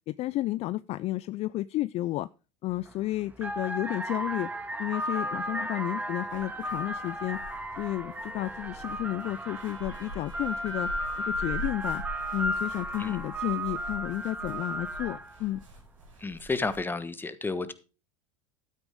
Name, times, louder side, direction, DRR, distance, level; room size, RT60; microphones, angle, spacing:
voice 1, 0.1-2.3 2.6-4.5 4.8-7.4 7.8-10.9 11.2-12.0 12.3-15.6, left 16 dB, 40° left, 17 dB, 0.4 m, -32 dB
sound 1, 2.7-2.9 3.3-15.4, right 1 dB, 10° right, 1.7 m, -34 dB
sound 2, 6.3-16.8, equal, 75° right, 6.4 m, -44 dB
Trumpet, 9.2-11.7, right 4 dB, 30° right, 3.6 m, -55 dB
voice 2, 16.2-17.7, left 3 dB, 10° left, 13 dB, 1.4 m, -31 dB
13.0 x 9.1 x 3.6 m, 0.33 s
hypercardioid pair, 80°, 16 cm